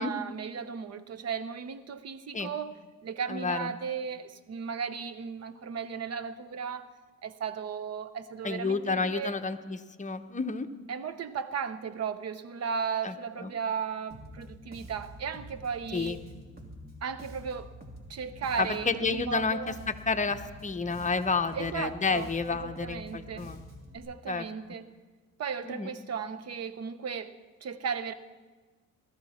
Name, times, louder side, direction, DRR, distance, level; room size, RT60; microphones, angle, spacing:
voice 1, 0.0-2.7 3.0-6.9 7.2-9.4 10.9-16.2 17.0-17.7 18.1-19.8 21.5-23.5 23.9-24.9 25.4-27.3 27.6-28.1, right 6 dB, 55° right, 12 dB, 1.0 m, -35 dB
voice 2, 3.3-3.7 8.4-10.7 13.0-13.5 15.9-16.2 18.6-23.6 24.3-24.4 25.6-25.9, left 4 dB, 25° left, 8 dB, 0.9 m, -30 dB
Bass guitar, 14.1-24.0, equal, 30° right, 3.0 m, -47 dB
20.5 x 13.5 x 4.3 m, 1.4 s
cardioid pair, 90°, 30 cm